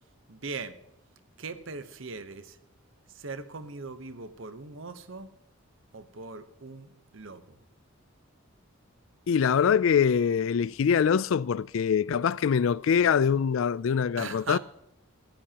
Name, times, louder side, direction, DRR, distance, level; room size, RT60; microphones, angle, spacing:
voice 1, 0.3-0.8 1.4-2.6 3.1-5.3 5.9-7.6 14.2-14.6, right 4 dB, 65° right, 1.0 m, -40 dB
voice 2, 9.3-14.6, left 7 dB, 65° left, 0.3 m, -24 dB
18.0 x 14.5 x 2.9 m
head